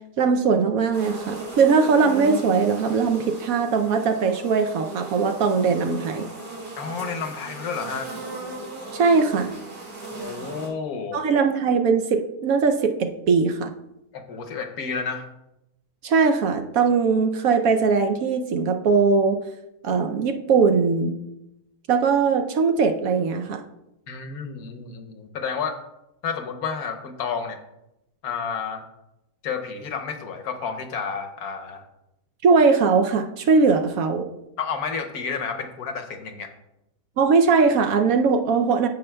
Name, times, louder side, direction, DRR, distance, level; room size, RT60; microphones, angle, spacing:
voice 1, 0.2-6.3 8.9-9.5 11.1-13.7 16.0-19.4 19.8-21.1 21.9-23.6 32.4-34.3 37.2-38.9, right 5 dB, 70° right, 6 dB, 1.0 m, -20 dB
sound 1, 0.9-10.7, right 2 dB, 85° right, 2.6 m, -37 dB
voice 2, 6.8-8.2 10.1-11.2 14.1-15.3 24.1-25.8 26.2-27.6 28.2-28.8 29.4-31.8 34.6-36.5, left 6 dB, 70° left, 6 dB, 1.3 m, -31 dB
15.0 x 5.3 x 2.2 m, 0.89 s
omnidirectional pair, 1.7 m